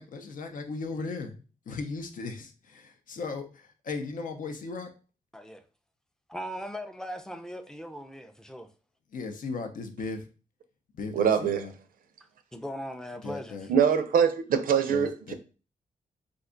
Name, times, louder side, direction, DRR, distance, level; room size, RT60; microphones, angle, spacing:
voice 1, 0.0-4.9 9.1-10.2 10.9-11.7 13.2-13.7 14.9-15.3, left 4 dB, 70° left, 0.6 m, -37 dB
voice 2, 6.3-8.7 12.5-13.7, equal, 5° left, 0.4 m, -39 dB
voice 3, 11.1-11.7 13.7-15.3, right 7 dB, 80° right, 0.5 m, -23 dB
2.5 x 2.3 x 3.7 m
cardioid pair, 90°, 14 cm